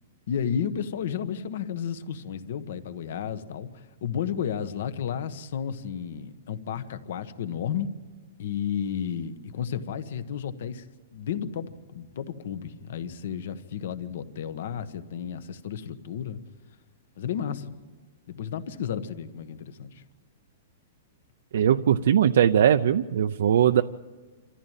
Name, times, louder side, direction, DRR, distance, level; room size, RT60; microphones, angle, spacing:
voice 1, 0.3-7.9 8.4-10.8 11.1-16.4 17.2-17.7 18.3-20.0, left 8 dB, 55° left, 12 dB, 1.3 m, -32 dB
voice 2, 21.5-23.8, right 9 dB, 65° right, 7 dB, 0.6 m, -20 dB
27.0 x 14.5 x 9.0 m, 1.4 s
hypercardioid pair, 175°, 0 cm